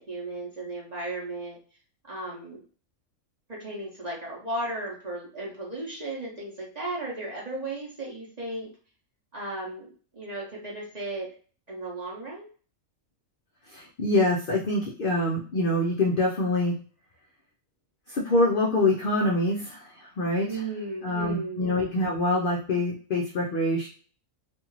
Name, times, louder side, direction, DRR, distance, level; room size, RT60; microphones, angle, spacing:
voice 1, 0.0-1.6 2.1-2.6 3.5-8.7 9.3-11.3 11.7-12.5 20.4-21.7, right 2 dB, 35° right, -4 dB, 0.8 m, -35 dB
voice 2, 13.7-16.8 18.1-20.6 21.0-23.9, left 1 dB, 65° left, -1 dB, 0.5 m, -25 dB
2.6 x 2.4 x 3.0 m, 0.40 s
omnidirectional pair, 1.4 m